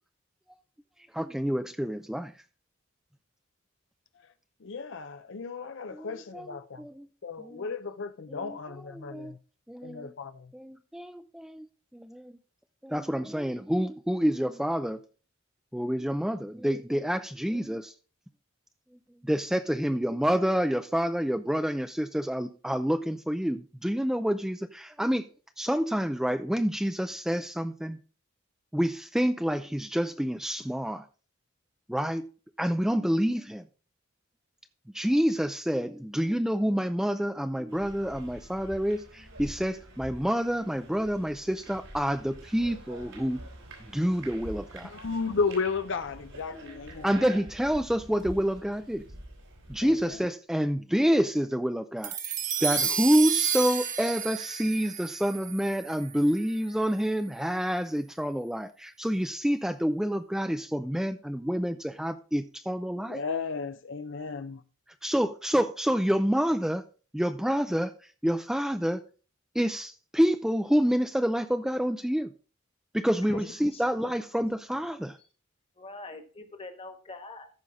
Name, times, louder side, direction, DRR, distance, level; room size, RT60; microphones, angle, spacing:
voice 1, 1.1-2.3 5.9-6.1 6.3-7.1 7.4-7.7 8.4-8.5 8.9-9.3 9.7-10.1 10.5-11.7 11.9-12.4 12.8-15.0 15.7-17.9 19.2-25.3 25.6-28.0 28.7-31.0 31.9-32.2 32.6-33.6 34.9-43.4 43.9-44.9 47.0-49.0 49.7-52.2 52.6-63.2 65.0-66.8 67.1-67.9 68.2-69.0 69.5-72.3 72.9-75.2, equal, 5° right, 0.4 m, -28 dB
voice 2, 4.6-6.9 7.2-9.4 9.8-10.5 44.8-47.1 49.8-50.2 63.0-64.6, left 4 dB, 65° left, 0.6 m, -34 dB
sound 1, 37.7-50.2, right 1 dB, 80° right, 4.4 m, -46 dB
sound 2, 52.0-56.6, right 7 dB, 40° right, 1.2 m, -31 dB
voice 3, 73.3-73.9 74.2-74.3 75.8-77.5, left 2 dB, 30° left, 1.4 m, -43 dB
14.0 x 5.5 x 3.6 m
head